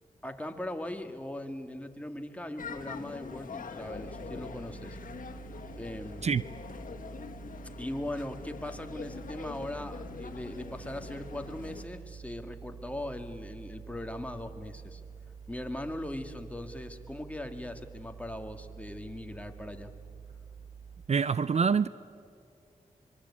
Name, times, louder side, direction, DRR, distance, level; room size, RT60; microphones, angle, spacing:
voice 1, 0.2-5.0 5.8-6.3 7.8-15.0 15.5-19.9, left 1 dB, 10° left, 2.0 m, -39 dB
sound 1, 2.6-11.8, left 5 dB, 70° left, 1.7 m, -44 dB
sound 2, 3.9-21.1, right 6 dB, 25° right, 0.9 m, -48 dB
voice 2, 21.1-21.9, right 6 dB, 50° right, 0.5 m, -25 dB
25.0 x 23.0 x 8.6 m
cardioid pair, 70°, 14 cm